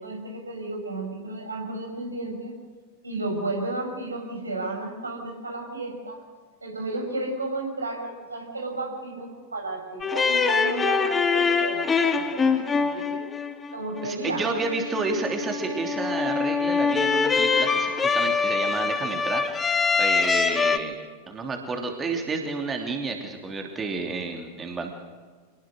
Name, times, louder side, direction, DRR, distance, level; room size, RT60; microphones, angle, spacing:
voice 1, 0.0-2.6 3.0-6.2 6.6-13.3 13.7-14.5, right 2 dB, 80° right, 2 dB, 5.5 m, -33 dB
sound 1, 10.0-20.8, left 5 dB, 15° left, 1.6 m, -24 dB
voice 2, 14.0-21.0 21.3-24.9, right 3 dB, 20° right, 3 dB, 3.2 m, -30 dB
27.0 x 20.0 x 6.5 m, 1.5 s
figure-of-eight pair, 90°, 0 cm